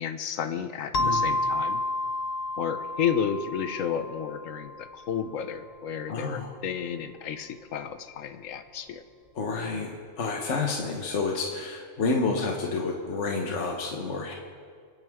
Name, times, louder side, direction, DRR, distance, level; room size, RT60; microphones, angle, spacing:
voice 1, 0.0-1.8 2.6-9.0, left 8 dB, 85° left, 9 dB, 1.1 m, -32 dB
sound 1, 0.9-5.3, left 2 dB, 40° left, 0.7 m, -30 dB
voice 2, 1.0-1.3 6.1-6.5 9.3-14.3, left 4 dB, 65° left, 1 dB, 1.4 m, -29 dB
26.5 x 9.4 x 3.6 m, 2.1 s
omnidirectional pair, 1.3 m